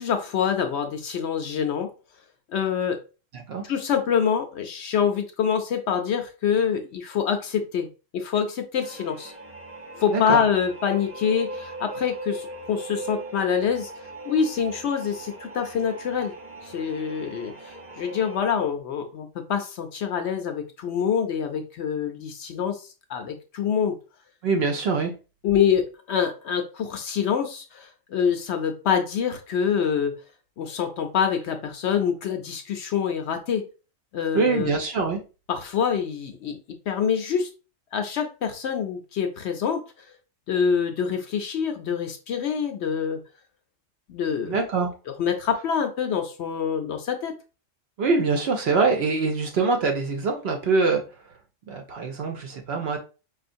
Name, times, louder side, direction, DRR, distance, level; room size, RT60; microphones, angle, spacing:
voice 1, 0.0-1.9 2.5-3.0 3.6-7.9 8.1-9.3 10.0-13.9 14.2-16.3 16.7-24.0 25.4-30.1 30.6-33.6 34.1-34.8 35.5-36.6 36.9-37.5 37.9-39.8 40.5-43.2 44.1-44.6 45.1-47.3, left 7 dB, 65° left, 0.8 m, -26 dB
voice 2, 3.3-3.6 10.1-10.4 24.4-25.1 34.3-35.2 44.5-44.9 48.0-51.0 51.7-53.0, right 4 dB, 60° right, 0.7 m, -24 dB
sound 1, 8.8-18.4, right 2 dB, 15° right, 0.5 m, -40 dB
5.0 x 2.4 x 2.5 m
omnidirectional pair, 1.3 m